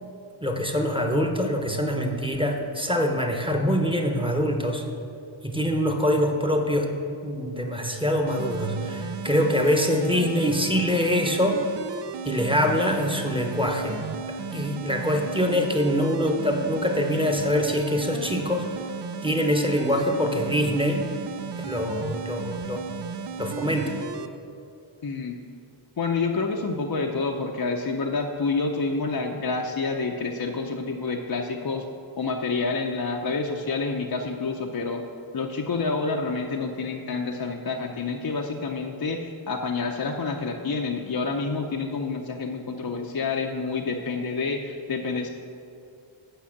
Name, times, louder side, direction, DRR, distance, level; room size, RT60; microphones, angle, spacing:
voice 1, 0.4-4.8 5.4-6.9 7.2-11.6 12.2-14.0 14.3-18.7 19.2-21.0 21.6-22.8 23.4-23.9, equal, 10° right, 2 dB, 1.0 m, -24 dB
sound 1, 8.3-24.3, right 6 dB, 60° right, 0.5 m, -35 dB
voice 2, 25.0-25.4 26.0-31.8 32.2-35.0 35.3-45.3, left 4 dB, 50° left, 2 dB, 0.7 m, -28 dB
8.7 x 5.5 x 7.2 m, 2.5 s
wide cardioid pair, 65°, 49 cm